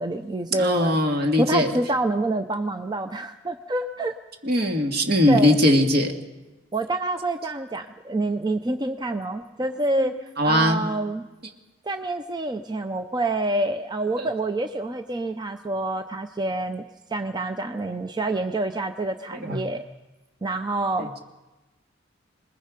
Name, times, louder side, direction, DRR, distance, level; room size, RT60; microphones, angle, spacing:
voice 1, 0.0-4.1 5.3-5.6 6.7-10.2 10.4-11.2 11.9-16.8 17.1-19.8 20.4-21.2, right 2 dB, 20° right, 8 dB, 0.6 m, -27 dB
voice 2, 0.6-1.7 4.4-6.1 10.4-10.8 14.2-14.3 19.4-19.6 21.0-21.1, left 1 dB, 55° right, 3 dB, 2.2 m, -20 dB
26.5 x 20.5 x 5.2 m, 1.1 s
head